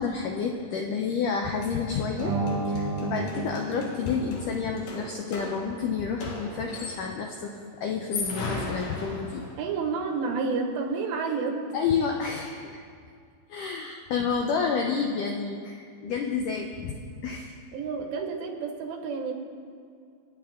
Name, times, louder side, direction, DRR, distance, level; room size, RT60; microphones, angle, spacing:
voice 1, 0.0-2.3 2.7-9.4 11.7-12.8 13.5-16.9 17.2-17.5, left 5 dB, 80° left, 2 dB, 1.8 m, -30 dB
sound 1, 1.3-1.4 1.6-7.3 7.9-9.7, left 2 dB, 60° left, 3.0 m, -38 dB
sound 2, 2.2-4.9, right 3 dB, 50° right, 2.3 m, -31 dB
voice 2, 9.6-11.6 17.7-19.3, right 4 dB, 85° right, 2 dB, 3.8 m, -30 dB
28.5 x 9.5 x 3.7 m, 2.2 s
omnidirectional pair, 4.8 m